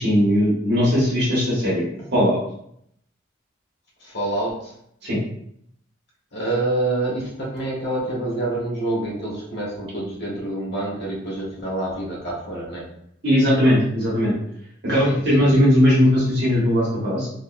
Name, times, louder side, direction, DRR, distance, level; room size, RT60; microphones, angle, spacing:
voice 1, 0.0-1.9 2.1-2.4 5.0-5.2 13.2-14.3 14.8-17.3, equal, 60° right, -6 dB, 1.3 m, -18 dB
voice 2, 4.0-4.8 6.3-12.9 15.0-15.6, right 2 dB, 60° left, -4 dB, 1.3 m, -27 dB
3.8 x 3.0 x 2.5 m, 0.70 s
head